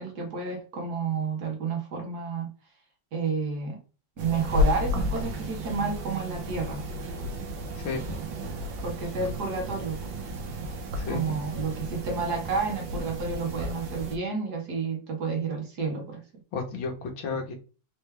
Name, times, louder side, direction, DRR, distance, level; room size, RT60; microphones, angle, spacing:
voice 1, 0.0-2.5 3.1-3.8 4.2-6.8 8.8-10.1 11.1-16.2, right 4 dB, 55° right, 1 dB, 1.7 m, -30 dB
sound 1, 4.2-14.2, left 1 dB, 75° right, 1.7 m, -32 dB
voice 2, 16.5-17.5, left 4 dB, 80° left, 3 dB, 1.9 m, -32 dB
4.6 x 3.1 x 3.3 m, 0.34 s
omnidirectional pair, 2.2 m